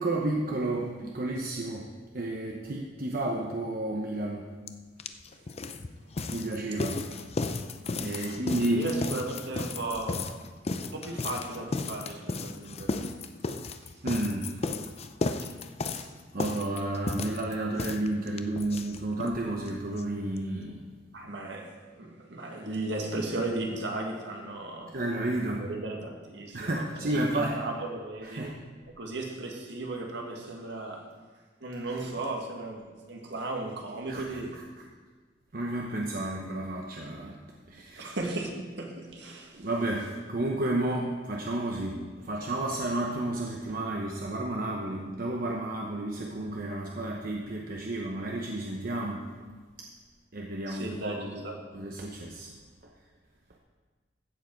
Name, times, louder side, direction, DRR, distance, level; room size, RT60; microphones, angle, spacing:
voice 1, 0.0-4.5 6.3-7.1 8.0-8.9 14.0-14.7 16.0-16.1 16.3-20.9 24.9-25.6 26.5-27.6 28.2-28.5 31.9-32.0 34.1-34.6 35.5-37.4 37.7-38.1 39.5-49.5 49.8-49.9 50.3-51.4 51.7-52.5 52.8-52.9, right 1 dB, 50° right, 0 dB, 1.0 m, -32 dB
sound 1, 4.7-4.8 5.0-19.4 19.7-19.8 20.0-20.1 20.4-20.5, left 3 dB, 35° left, 0.5 m, -34 dB
voice 2, 8.1-10.3 10.8-13.0 21.1-25.0 25.5-28.6 28.9-31.0 31.6-34.6 38.0-39.7 50.7-51.6, right 2 dB, 65° right, 1 dB, 1.8 m, -36 dB
15.0 x 7.6 x 4.6 m, 1.4 s
head